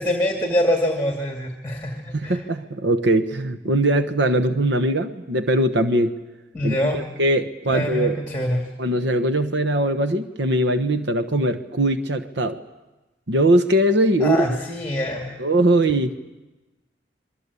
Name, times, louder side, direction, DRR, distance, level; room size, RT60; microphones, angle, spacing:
voice 1, 0.0-2.4 6.5-7.0 7.7-8.7 14.2-15.4, left 1 dB, 10° left, 2 dB, 2.4 m, -24 dB
voice 2, 2.2-6.1 6.6-8.2 8.8-12.6 13.3-14.5 15.4-16.1, right 1 dB, 80° right, 9 dB, 1.2 m, -21 dB
27.5 x 23.0 x 8.4 m, 1.1 s
head